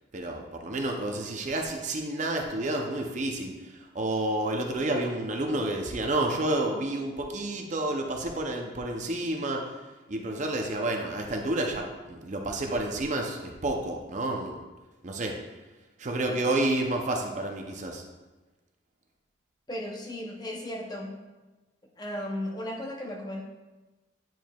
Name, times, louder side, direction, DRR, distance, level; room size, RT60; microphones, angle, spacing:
voice 1, 0.1-9.8 10.1-14.6 15.0-15.3 16.0-18.0, right 1 dB, 35° right, 2 dB, 0.5 m, -30 dB
voice 2, 19.7-21.2 22.0-23.4, left 1 dB, 20° left, 0 dB, 0.6 m, -35 dB
9.0 x 4.5 x 2.3 m, 1.2 s
head